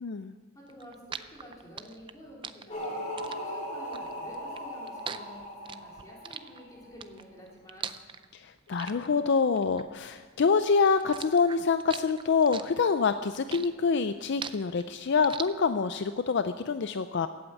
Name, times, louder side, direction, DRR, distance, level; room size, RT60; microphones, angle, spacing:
voice 1, 0.0-0.3 8.3-17.3, left 5 dB, 55° left, 10 dB, 0.4 m, -26 dB
voice 2, 0.5-3.0 3.3-7.9, equal, 15° left, -4 dB, 3.8 m, -50 dB
sound 1, 0.7-10.5 10.8-16.0, right 6 dB, 25° right, 0.4 m, -42 dB
sound 2, 2.7-6.9, equal, 30° left, 2.9 m, -38 dB
15.0 x 8.7 x 8.4 m, 1.5 s
head